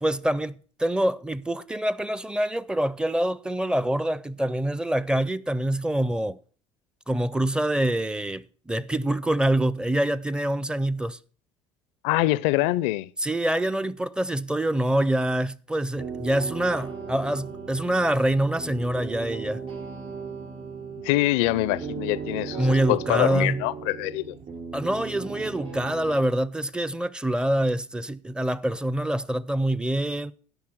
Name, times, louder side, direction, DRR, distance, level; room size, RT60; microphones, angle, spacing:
voice 1, 0.0-6.4 7.1-11.2 13.2-19.6 22.6-23.7 24.7-30.3, right 1 dB, 5° right, 0.5 m, -25 dB
voice 2, 12.0-13.1 21.0-24.3, left 18 dB, 75° left, 0.5 m, -24 dB
sound 1, 15.9-26.2, right 5 dB, 50° right, 6.4 m, -37 dB
13.0 x 5.7 x 6.1 m
hypercardioid pair, 70°, 14 cm